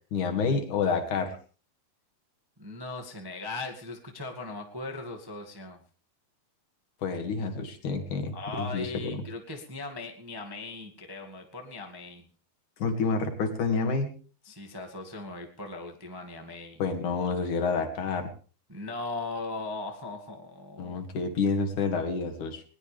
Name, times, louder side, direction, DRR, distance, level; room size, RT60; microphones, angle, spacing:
voice 1, 0.1-1.4 7.0-9.2 12.8-14.2 16.8-18.3 20.8-22.6, left 4 dB, 55° left, 4 dB, 3.4 m, -29 dB
voice 2, 2.6-5.8 8.3-12.3 14.4-16.8 18.7-21.0, left 3 dB, 30° right, 2 dB, 0.4 m, -38 dB
21.0 x 19.0 x 3.5 m, 0.39 s
omnidirectional pair, 4.5 m